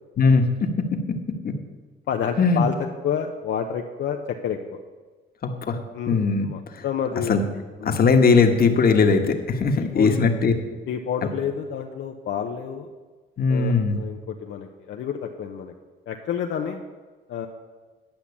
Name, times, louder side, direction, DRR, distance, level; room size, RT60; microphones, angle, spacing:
voice 1, 2.1-2.7 3.0-4.6 5.9-7.4 7.8-8.0 9.7-10.2 10.9-12.9 13.5-15.7 16.1-16.8 17.3-17.5, left 8 dB, 70° left, 2 dB, 0.8 m, -29 dB
voice 2, 5.4-5.8 6.1-6.5 6.7-6.8 7.3-7.4 7.8-10.5 13.4-14.0, left 4 dB, 50° left, 5 dB, 1.4 m, -19 dB
10.5 x 5.8 x 8.4 m, 1.4 s
cardioid pair, 90°, 20 cm